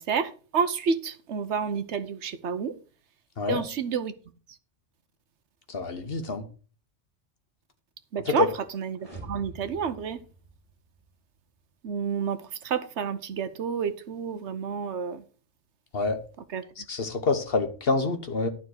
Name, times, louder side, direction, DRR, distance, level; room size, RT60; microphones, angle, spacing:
voice 1, 0.0-2.8 3.5-4.1 8.1-10.2 11.8-15.2 16.5-16.7, right 6 dB, 70° right, 1.1 m, -30 dB
voice 2, 5.7-6.4 8.3-8.5 15.9-16.2 16.9-18.5, left 3 dB, 55° left, 1.4 m, -26 dB
sound 1, 9.0-11.1, right 3 dB, 30° right, 2.8 m, -45 dB
12.0 x 4.2 x 6.4 m
omnidirectional pair, 1.2 m